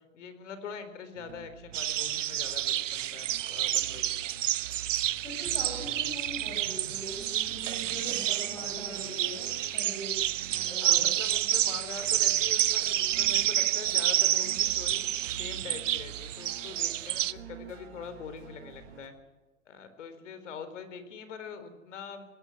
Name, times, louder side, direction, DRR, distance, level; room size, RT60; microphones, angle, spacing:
voice 1, 0.1-4.3 10.8-15.0 15.3-19.1 19.6-22.2, left 6 dB, 65° left, 10 dB, 4.3 m, -43 dB
sound 1, 1.1-19.1, right 7 dB, 55° right, 4.5 m, -48 dB
sound 2, 1.7-17.3, right 12 dB, 70° right, 0.8 m, -29 dB
voice 2, 5.2-11.2, equal, 10° left, -1 dB, 5.4 m, -42 dB
20.0 x 16.0 x 9.6 m, 1.2 s
hypercardioid pair, 145°, 39 cm